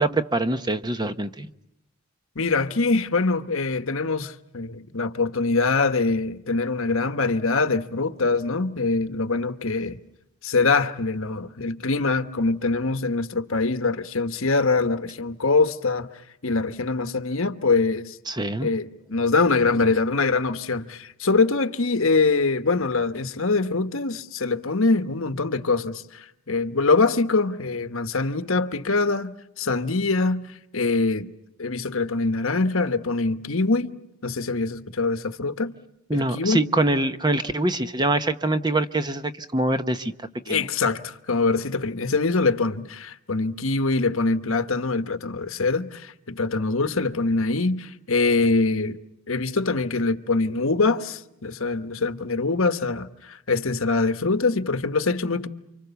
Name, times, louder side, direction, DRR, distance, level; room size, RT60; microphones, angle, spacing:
voice 1, 0.0-1.5 18.3-18.7 36.1-40.1 40.5-40.7, right 2 dB, 20° right, 0.9 m, -24 dB
voice 2, 2.3-10.0 10.4-16.1 16.4-18.2 18.6-30.4 30.7-31.3 31.6-33.9 34.2-35.7 36.1-36.6 40.5-49.0 49.3-55.5, left 3 dB, 70° left, 1.2 m, -24 dB
29.5 x 25.5 x 7.0 m
head